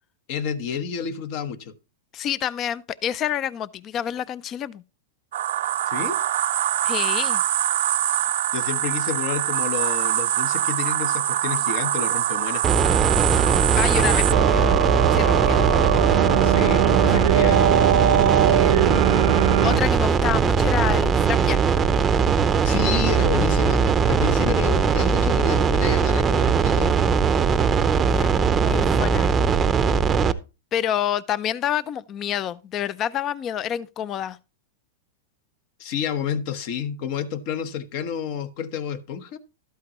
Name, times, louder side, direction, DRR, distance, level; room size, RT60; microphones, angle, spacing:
voice 1, 0.3-1.7 5.9-6.2 8.5-12.7 16.4-17.9 22.6-26.9 35.8-39.4, left 8 dB, 50° left, 1.1 m, -30 dB
voice 2, 2.1-4.8 6.8-7.4 13.3-13.5 13.7-15.9 19.1-19.2 19.6-21.6 28.1-29.3 30.7-34.4, left 10 dB, 30° left, 0.4 m, -28 dB
sound 1, 5.3-19.8, right 12 dB, 75° right, 0.5 m, -23 dB
sound 2, 12.6-30.3, right 6 dB, 15° right, 0.6 m, -20 dB
12.5 x 8.4 x 3.0 m
supercardioid pair, 140°, 0 cm